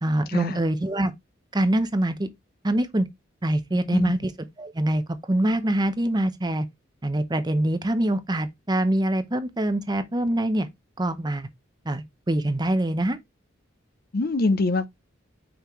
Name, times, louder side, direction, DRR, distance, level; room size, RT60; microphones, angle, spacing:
voice 1, 0.0-1.1 1.5-2.3 2.6-3.1 3.4-4.3 4.6-5.0 5.3-6.7 7.0-10.7 11.0-11.5 11.9-13.2, right 1 dB, 20° right, 0.7 m, -24 dB
voice 2, 14.1-14.9, left 3 dB, 50° left, 0.6 m, -24 dB
5.8 x 5.5 x 3.1 m
head